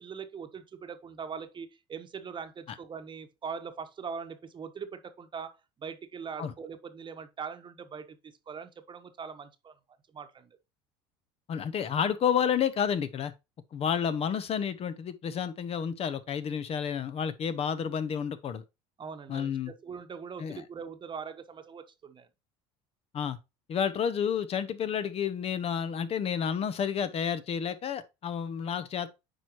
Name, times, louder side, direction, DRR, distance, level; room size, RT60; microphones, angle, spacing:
voice 1, 0.0-9.7 10.1-10.6 19.0-22.3, right 6 dB, 35° right, 1.1 m, -41 dB
voice 2, 11.5-13.3 13.7-18.6 19.3-19.7 20.4-20.6 23.1-23.4 23.7-29.1, left 7 dB, 45° left, 0.9 m, -30 dB
9.1 x 4.7 x 3.0 m
supercardioid pair, 90°, 15 cm